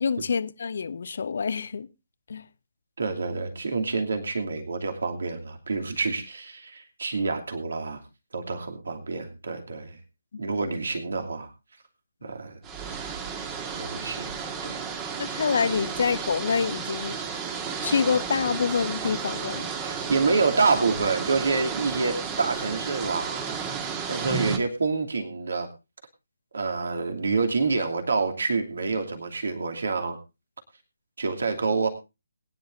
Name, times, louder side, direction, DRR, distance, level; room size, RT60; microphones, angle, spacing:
voice 1, 0.0-1.9 2.3-2.4 12.2-12.3 15.2-17.2 17.8-19.7, left 5 dB, 50° left, 0.8 m, -26 dB
voice 2, 3.0-8.0 8.3-10.0 10.4-11.5 12.2-12.6 13.8-14.4 14.6-14.8 19.8-23.5 24.1-25.7 26.5-30.2 31.2-31.9, right 4 dB, 60° right, 2.8 m, -27 dB
sound 1, 12.6-24.6, right 6 dB, 15° right, 1.6 m, -33 dB
21.0 x 10.5 x 2.6 m
figure-of-eight pair, 145°, 0 cm